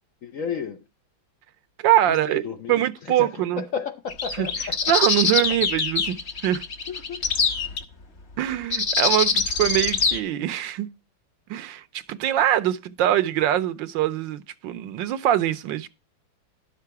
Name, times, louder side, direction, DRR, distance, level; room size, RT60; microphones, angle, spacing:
voice 1, 0.2-0.8 2.1-4.9 6.9-7.2, left 6 dB, 60° left, 0.9 m, -33 dB
voice 2, 1.8-2.4 2.7-3.6 4.4-4.5 4.9-6.2 6.4-6.6 8.4-10.9 11.5-15.9, right 12 dB, 75° right, 1.4 m, -23 dB
sound 1, 4.1-7.8 8.7-10.2, left 4 dB, 40° left, 1.1 m, -24 dB
11.5 x 6.8 x 4.6 m
omnidirectional pair, 2.1 m